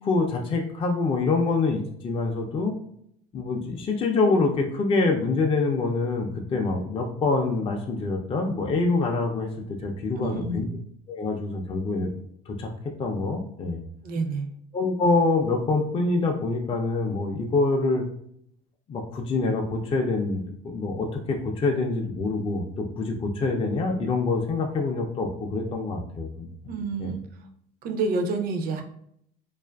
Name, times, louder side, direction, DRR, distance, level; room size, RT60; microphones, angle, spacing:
voice 1, 0.0-2.7 3.3-9.5 9.8-10.7 11.1-12.1 12.5-12.7 13.0-13.8 14.7-18.0 18.9-26.5 27.0-27.1, left 3 dB, 30° left, 2 dB, 0.4 m, -25 dB
voice 2, 10.2-10.7 14.0-14.5 26.7-27.2 27.8-28.8, right 3 dB, 50° right, 5 dB, 0.5 m, -28 dB
2.4 x 2.4 x 2.2 m, 0.69 s
supercardioid pair, 95°, 19 cm